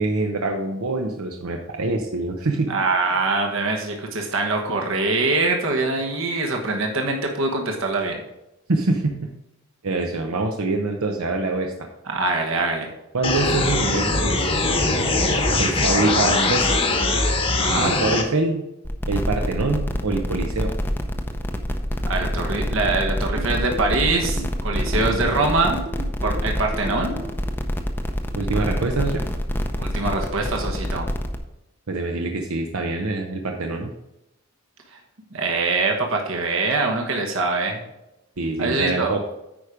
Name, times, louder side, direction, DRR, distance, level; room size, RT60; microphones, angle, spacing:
voice 1, 0.0-2.7 8.7-9.3 9.8-11.9 13.1-14.5 15.6-16.8 17.8-18.6 19.1-20.7 25.1-25.2 28.3-29.2 31.9-33.9 38.4-39.2, right 3 dB, 85° right, 3 dB, 0.8 m, -25 dB
voice 2, 2.7-8.2 12.1-12.9 17.6-17.9 22.0-25.8 26.2-27.1 29.8-31.1 35.3-37.8 38.6-39.1, right 3 dB, 65° right, 2 dB, 1.2 m, -23 dB
sound 1, 13.2-18.2, left 2 dB, 25° left, 1.0 m, -21 dB
sound 2, 18.8-31.4, equal, 10° left, 0.6 m, -26 dB
sound 3, 23.4-27.3, right 2 dB, 35° right, 1.3 m, -36 dB
9.0 x 5.1 x 4.9 m, 0.90 s
head